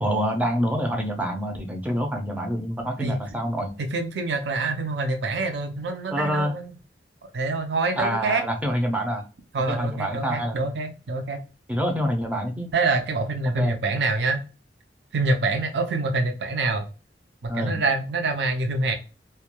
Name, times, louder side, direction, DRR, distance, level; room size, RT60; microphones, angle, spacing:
voice 1, 0.0-3.8 6.1-6.5 8.0-9.2 9.7-10.7 11.7-12.7 13.5-13.8 17.5-17.8, equal, 10° right, 4 dB, 0.4 m, -26 dB
voice 2, 3.8-6.7 7.3-8.4 9.5-11.4 12.7-14.4 15.1-16.8 17.4-18.9, right 3 dB, 70° right, 5 dB, 0.5 m, -26 dB
2.2 x 2.2 x 2.9 m, 0.32 s
head